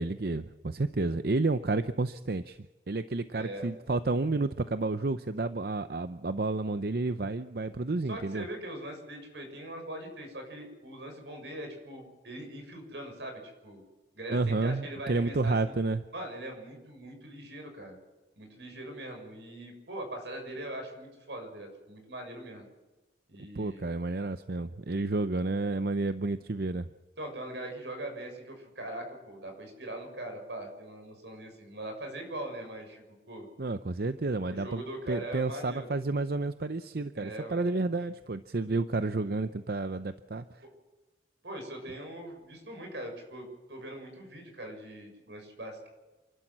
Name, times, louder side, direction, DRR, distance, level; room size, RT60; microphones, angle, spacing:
voice 1, 0.0-2.6 2.9-8.4 14.3-16.0 23.6-26.9 33.6-34.8 35.1-40.6, right 3 dB, 60° right, 11 dB, 0.7 m, -30 dB
voice 2, 3.3-3.7 8.1-13.8 14.1-15.7 16.1-18.0 18.4-22.7 23.3-23.8 27.2-33.5 34.5-35.9 37.1-37.6 41.4-45.9, right 1 dB, 85° right, 4 dB, 6.6 m, -41 dB
28.5 x 12.0 x 7.5 m, 1.1 s
head